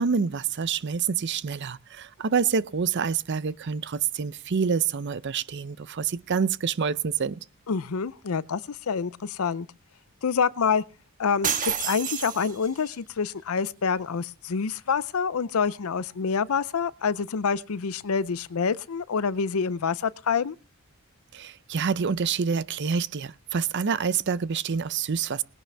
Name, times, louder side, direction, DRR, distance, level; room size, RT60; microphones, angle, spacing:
voice 1, 0.0-7.4 21.3-25.4, right 6 dB, 50° right, 0.5 m, -27 dB
voice 2, 7.7-9.7 10.2-10.8 11.2-20.6, left 5 dB, 70° left, 0.6 m, -27 dB
sound 1, 11.4-12.9, right 7 dB, 35° right, 1.4 m, -29 dB
20.0 x 11.0 x 3.4 m
head